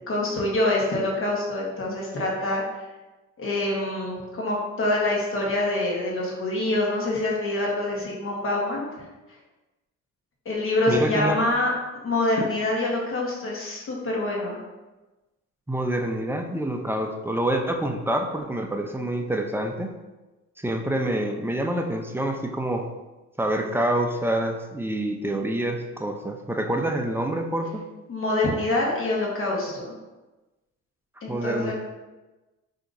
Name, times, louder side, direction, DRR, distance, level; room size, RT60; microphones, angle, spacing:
voice 1, 0.1-2.6 3.4-8.9 10.4-11.7 12.0-14.6 28.1-29.9 31.2-31.7, left 2 dB, 45° left, -2 dB, 1.2 m, -25 dB
voice 2, 10.9-11.4 15.7-19.9 20.6-22.9 23.4-27.9 31.3-31.7, right 1 dB, 10° right, 3 dB, 0.4 m, -27 dB
5.1 x 2.8 x 2.6 m, 1.1 s
cardioid pair, 90°, 30 cm